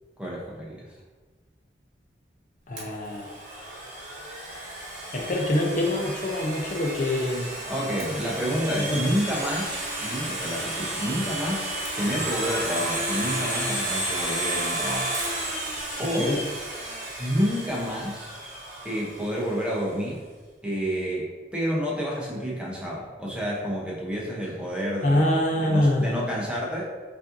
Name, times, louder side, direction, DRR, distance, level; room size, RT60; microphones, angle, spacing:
voice 1, 0.2-0.9 7.7-15.1 16.0-16.3 17.2-18.3 18.8-20.2 20.6-26.8, equal, 5° right, -5 dB, 0.7 m, -29 dB
voice 2, 2.7-3.3 5.1-7.5 8.1-8.2 8.5-9.0 16.1-16.4 25.0-26.1, left 1 dB, 45° left, 0 dB, 0.4 m, -25 dB
Domestic sounds home sounds, 2.8-19.5, right 1 dB, 45° right, 0.9 m, -32 dB
5.3 x 2.5 x 2.5 m, 1.4 s
head